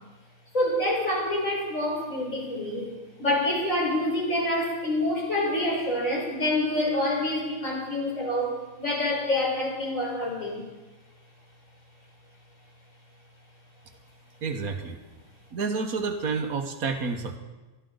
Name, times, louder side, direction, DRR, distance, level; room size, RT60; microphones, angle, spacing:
voice 1, 0.5-2.9 3.2-10.6, left 1 dB, 60° left, -3 dB, 5.2 m, -27 dB
voice 2, 14.4-15.0 15.5-17.4, right 4 dB, 75° right, 6 dB, 1.7 m, -29 dB
23.5 x 13.0 x 3.9 m, 1.2 s
omnidirectional pair, 1.5 m